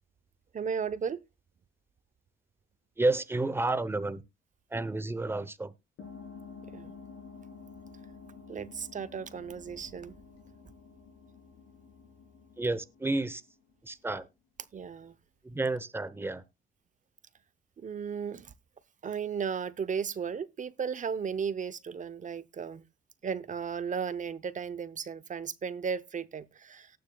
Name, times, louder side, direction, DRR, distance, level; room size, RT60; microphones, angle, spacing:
voice 1, 0.5-1.2 6.7-6.9 8.5-10.1 14.7-15.1 17.8-18.5 19.0-22.8 23.2-26.9, right 6 dB, 40° right, 0.8 m, -35 dB
voice 2, 3.0-4.2 4.7-5.7 12.6-13.4 13.8-14.3 15.4-16.4, right 2 dB, 10° right, 0.8 m, -30 dB
sound 1, 6.0-14.1, left 5 dB, 70° left, 3.7 m, -50 dB
18.5 x 6.6 x 2.3 m
cardioid pair, 90°, 20 cm